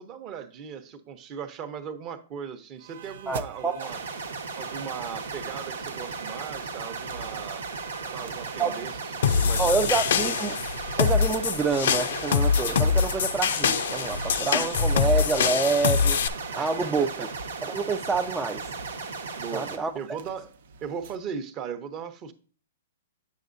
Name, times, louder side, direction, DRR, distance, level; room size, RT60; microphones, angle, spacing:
voice 1, 0.0-4.0 4.5-7.7 8.0-8.9 9.2-9.7 16.5-17.3 19.4-20.5 20.8-22.3, right 7 dB, 30° right, 0.8 m, -38 dB
sound 1, 2.8-21.2, right 6 dB, 70° right, 0.6 m, -44 dB
voice 2, 3.3-3.9 8.6-8.8 9.6-10.6 11.0-16.2 16.5-17.1 17.7-18.7 19.5-20.2, right 4 dB, 10° right, 0.3 m, -27 dB
sound 2, 3.8-19.8, right 4 dB, 90° right, 1.2 m, -36 dB
sound 3, 9.2-16.3, left 6 dB, 70° left, 0.5 m, -24 dB
8.2 x 6.1 x 2.6 m
hypercardioid pair, 145°, 0 cm